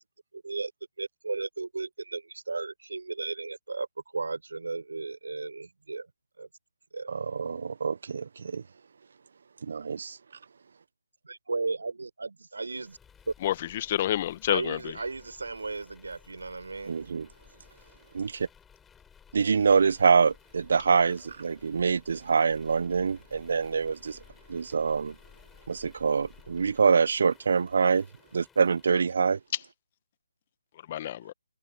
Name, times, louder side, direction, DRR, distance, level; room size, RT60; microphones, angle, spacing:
voice 1, 0.3-0.7 1.0-3.9 4.1-6.1 6.4-6.5 6.9-7.1 11.2-13.0 13.3-13.4 14.5-17.0, right 3 dB, 70° right, 4.9 m, -35 dB
voice 2, 7.1-8.6 9.6-10.2 16.9-17.3 18.1-18.5 19.3-24.2 24.5-25.2 25.7-28.1 28.3-29.4, right 5 dB, 55° right, 1.2 m, -25 dB
sound 1, 12.7-29.4, left 7 dB, 10° left, 5.2 m, -57 dB
voice 3, 13.4-14.9 30.9-31.3, left 12 dB, 30° left, 1.8 m, -29 dB
figure-of-eight pair, 150°, 0 cm